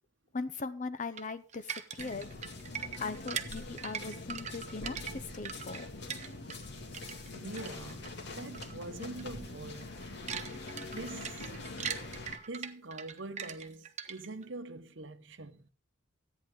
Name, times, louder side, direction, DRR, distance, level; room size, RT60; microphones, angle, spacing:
voice 1, 0.3-2.3 3.0-5.9, left 4 dB, 40° left, 0.8 m, -39 dB
sound 1, 1.2-6.7 6.9-8.1 8.5-8.7 9.0-9.2 9.7-14.5, right 7 dB, 35° right, 1.1 m, -41 dB
sound 2, 2.0-12.4, left 2 dB, 60° left, 2.0 m, -44 dB
voice 2, 7.3-10.0 10.9-11.8 12.5-15.7, right 2 dB, 65° right, 1.0 m, -44 dB
14.0 x 9.4 x 3.7 m
head